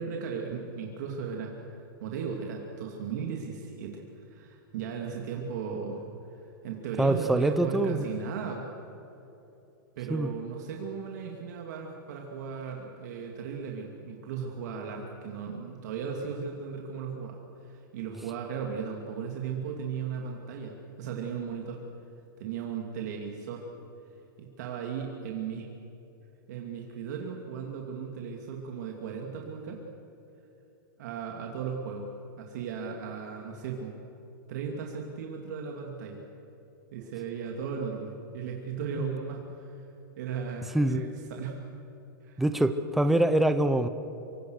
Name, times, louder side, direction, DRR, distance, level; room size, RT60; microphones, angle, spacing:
voice 1, 0.0-1.7 2.0-6.0 6.4-8.7 10.0-21.8 22.4-23.6 24.4-25.6 26.5-29.8 31.0-32.1 32.4-34.0 34.5-36.2 36.9-39.9 40.2-41.6 42.2-42.4, right 6 dB, 50° right, 0 dB, 2.7 m, -36 dB
voice 2, 7.0-8.1 10.1-10.3 39.0-39.1 40.7-41.0 42.4-43.9, right 1 dB, ahead, 9 dB, 0.6 m, -24 dB
26.5 x 24.5 x 6.6 m, 2.9 s
supercardioid pair, 175°, 12 cm